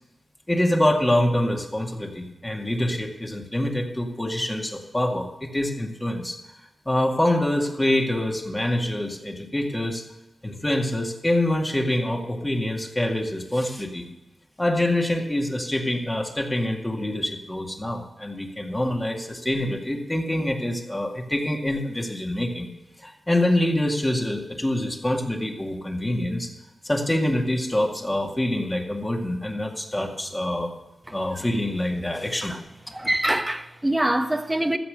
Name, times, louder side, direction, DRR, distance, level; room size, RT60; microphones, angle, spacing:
voice 1, 0.5-6.4 6.9-10.1 10.4-14.1 14.6-22.7 23.0-26.5 26.8-30.7 31.1-32.5, left 1 dB, 15° left, 2.2 m, -25 dB
voice 2, 32.9-34.8, right 1 dB, 15° right, 1.1 m, -24 dB
14.0 x 7.7 x 6.5 m
cardioid pair, 70°, 0 cm